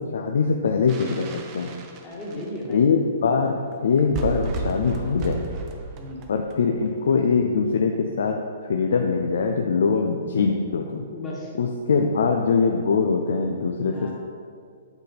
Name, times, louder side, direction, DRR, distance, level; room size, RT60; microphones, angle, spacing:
voice 1, 0.1-1.7 2.7-5.4 6.3-8.4 8.7-11.1 11.6-14.1, left 5 dB, 75° left, 3 dB, 0.5 m, -22 dB
sound 1, 0.9-2.7 3.5-3.6 3.7-3.8 4.0-7.1, right 3 dB, 30° right, 0.7 m, -33 dB
voice 2, 2.0-2.8 5.9-6.2 11.1-11.5 12.0-12.1 13.9-14.1, left 1 dB, 15° left, -4 dB, 1.6 m, -35 dB
8.1 x 4.1 x 5.1 m, 2.2 s
hypercardioid pair, 155°, 0 cm